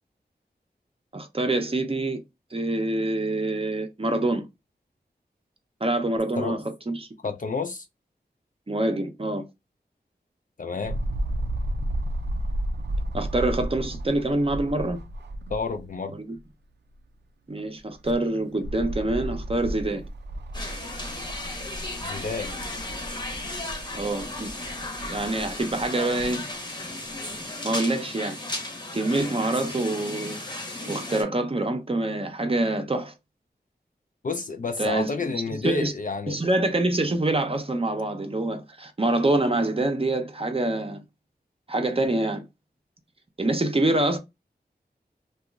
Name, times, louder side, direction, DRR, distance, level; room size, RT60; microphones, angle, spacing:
voice 1, 1.1-2.2 2.5-4.5 5.8-7.1 8.7-9.4 13.1-15.0 16.1-16.4 17.5-20.0 23.9-24.5 25.0-26.5 27.6-28.4 28.9-30.4 30.9-33.1 34.8-35.3 35.6-35.9 36.3-41.0 41.7-42.4 43.4-44.2, right 2 dB, 35° right, 0.6 m, -26 dB
voice 2, 7.2-7.9 10.6-11.0 15.5-16.1 22.0-22.5 34.2-36.4, left 4 dB, 50° left, 0.4 m, -30 dB
sound 1, 10.8-15.9 16.3-16.4 17.8-26.3 27.1-27.2, right 1 dB, 80° right, 0.4 m, -33 dB
sound 2, 20.5-31.2, left 2 dB, 25° left, 0.8 m, -35 dB
2.9 x 2.3 x 2.3 m
wide cardioid pair, 55°, 18 cm